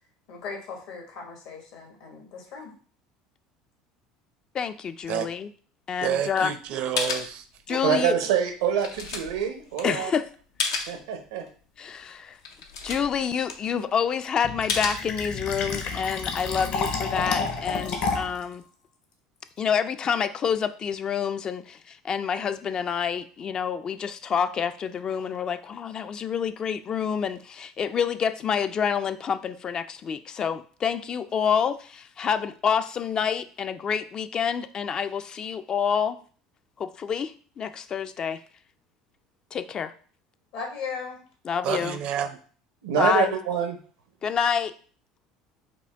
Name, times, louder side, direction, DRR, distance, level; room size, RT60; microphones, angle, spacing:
voice 1, 0.3-2.7 40.5-41.2, left 5 dB, 75° left, 1 dB, 1.4 m, -37 dB
voice 2, 4.5-5.5 5.9-6.5 7.7-8.1 9.8-10.2 11.8-12.4 12.8-18.6 19.6-36.2 36.8-38.4 39.5-39.9 41.5-42.0 43.0-43.3 44.2-44.7, left 7 dB, 35° left, 11 dB, 0.3 m, -28 dB
voice 3, 6.0-7.8 41.6-42.4, right 9 dB, 60° right, 10 dB, 0.5 m, -29 dB
sound 1, 6.6-6.7 7.0-8.0 8.3-11.0 11.5-11.6 12.0-12.1 12.3-14.1 14.7-15.7 16.1-18.4, left 5 dB, 90° left, 0.6 m, -34 dB
voice 4, 7.8-10.1 10.9-11.5 42.8-43.8, right 8 dB, 85° right, 6 dB, 0.8 m, -25 dB
Fill (with liquid), 14.4-18.4, left 4 dB, 50° left, 0.7 m, -30 dB
5.0 x 2.2 x 3.4 m, 0.43 s
supercardioid pair, 90°, 2 cm